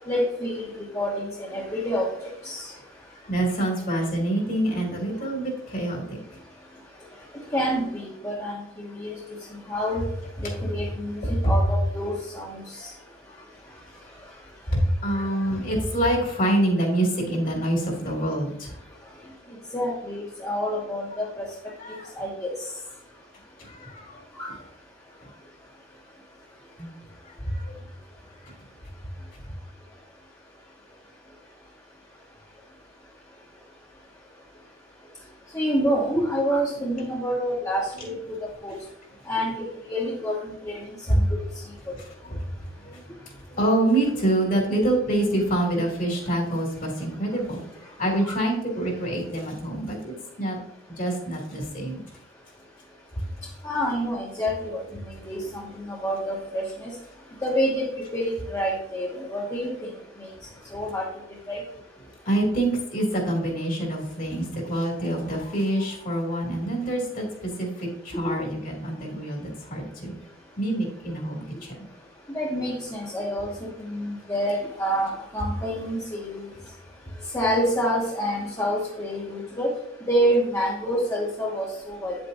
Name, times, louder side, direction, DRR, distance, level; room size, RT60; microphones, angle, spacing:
voice 1, 0.1-0.7 0.9-2.1 2.4-2.7 7.5-9.2 9.7-10.0 10.4-12.6 19.7-21.5 22.1-22.5 24.4-24.5 35.5-38.1 38.6-38.7 39.3-39.5 39.9-40.4 40.6-40.8 41.3-41.4 48.2-48.3 53.6-54.8 55.3-55.4 55.9-56.9 57.4-59.9 60.7-61.0 61.5-61.6 72.3-73.5 73.8-76.4 77.3-79.7 80.1-82.2, equal, 15° left, -5 dB, 1.4 m, -27 dB
voice 2, 3.2-6.2 9.9-10.0 10.6-10.7 11.2-11.8 12.8-13.4 14.7-18.8 21.1-21.2 21.8-22.1 23.6-24.6 25.2-25.3 26.8-26.9 27.2-27.8 28.4-28.5 41.1-41.3 42.0-50.6 51.0-52.0 53.2-53.3 61.5-61.8 62.0-70.1 70.6-71.9, right 1 dB, 45° left, 0 dB, 2.9 m, -26 dB
9.6 x 8.1 x 2.8 m, 0.74 s
head